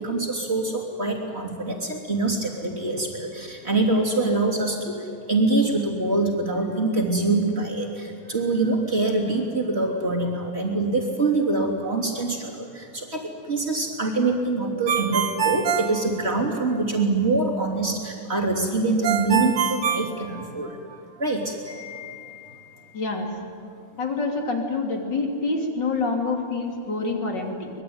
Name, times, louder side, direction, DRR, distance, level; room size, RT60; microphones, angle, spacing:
voice 1, 0.0-20.8 21.2-22.9, right 2 dB, 30° right, -1 dB, 3.3 m, -25 dB
Ringtone, 14.9-16.8 19.0-20.9, right 8 dB, 60° right, 1.8 m, -25 dB
voice 2, 22.9-23.3 24.0-27.7, left 3 dB, 50° left, 2 dB, 3.6 m, -26 dB
24.5 x 21.5 x 9.5 m, 2.4 s
omnidirectional pair, 2.4 m